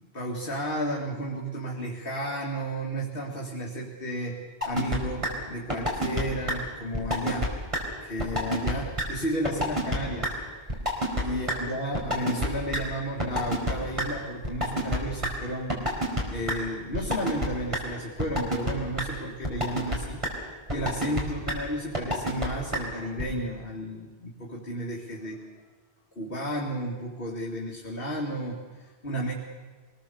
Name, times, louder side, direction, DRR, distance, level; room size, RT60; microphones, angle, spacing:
voice 1, 0.0-7.5 8.0-10.3 10.6-10.7 11.2-15.8 16.3-20.2 20.7-25.4 26.2-29.3, equal, 60° left, -3 dB, 2.4 m, -33 dB
sound 1, 4.6-5.0 5.2-5.3 5.7-6.2 6.5-6.6 6.9-7.5 7.7-7.8 8.2-8.7 9.0-9.1 9.4-10.0 10.2-10.3 10.7-11.2 11.5-11.6 11.9-12.5 12.7-12.8 13.2-14.0 14.4-15.3 15.7-16.2 16.5-16.6 16.9-17.5 17.7-17.8 18.2-18.7 19.0-19.1 19.4-20.0 20.2-20.3 20.7-21.2 21.5-21.6 21.9-22.5 22.7-22.8 23.2-23.3, equal, 30° right, 4.4 m, -26 dB
25.5 x 20.0 x 6.9 m, 1.4 s
omnidirectional pair, 1.0 m